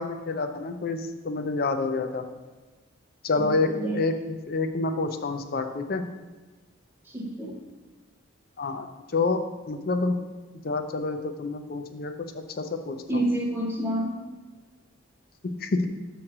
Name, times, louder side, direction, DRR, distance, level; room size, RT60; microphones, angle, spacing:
voice 1, 0.0-2.3 3.2-6.0 8.6-8.9 9.1-9.4 9.7-10.2 10.6-13.2 15.6-15.9, left 3 dB, 45° left, 7 dB, 0.5 m, -28 dB
voice 2, 3.3-4.0 7.1-7.6 13.1-14.2, right 1 dB, 10° right, -1 dB, 0.9 m, -29 dB
7.5 x 3.1 x 5.9 m, 1.3 s
head